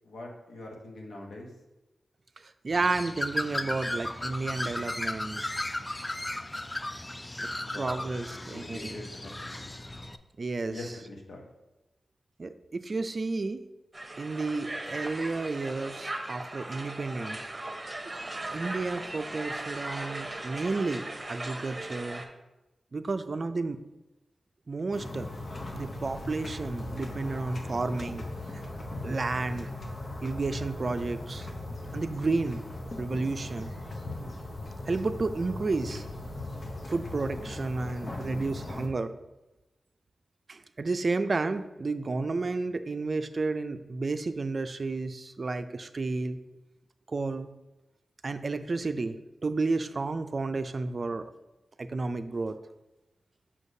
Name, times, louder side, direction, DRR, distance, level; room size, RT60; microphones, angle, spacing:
voice 1, 0.0-1.5 7.6-8.1 8.4-9.7 10.7-11.4, left 2 dB, 90° left, 0 dB, 1.0 m, -43 dB
voice 2, 2.6-5.4 7.4-7.5 7.8-9.0 10.4-10.8 12.4-13.6 14.2-17.4 18.5-22.2 22.9-23.8 24.7-25.3 25.7-28.3 29.0-29.7 30.2-31.5 31.9-32.6 33.0-33.7 34.2-34.4 34.9-36.0 36.9-39.1 40.5-46.4 47.1-47.5 48.2-49.2 49.4-51.2 51.8-52.6, right 3 dB, 55° right, 10 dB, 0.4 m, -31 dB
Bird, 2.7-10.2, left 1 dB, 25° left, 0.4 m, -35 dB
Crowd, 13.9-22.3, right 2 dB, 30° right, 0.9 m, -38 dB
sound 1, 24.9-38.9, left 2 dB, 60° left, 0.8 m, -39 dB
6.3 x 5.8 x 2.7 m, 0.99 s
cardioid pair, 40°, 0 cm